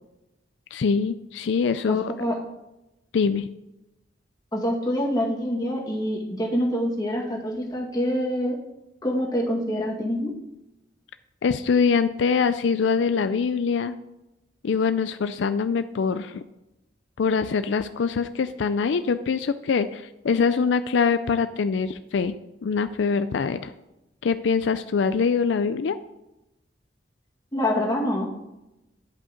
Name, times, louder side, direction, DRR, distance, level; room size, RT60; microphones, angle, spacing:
voice 1, 0.7-2.1 3.1-3.5 11.4-14.0 14.6-16.4 17.2-22.3 22.6-23.7 24.2-26.0, left 5 dB, 80° left, 11 dB, 0.4 m, -23 dB
voice 2, 1.9-2.4 4.5-8.5 9.0-10.3 27.5-28.3, equal, 20° left, -2 dB, 2.0 m, -26 dB
11.0 x 5.5 x 5.1 m, 0.94 s
head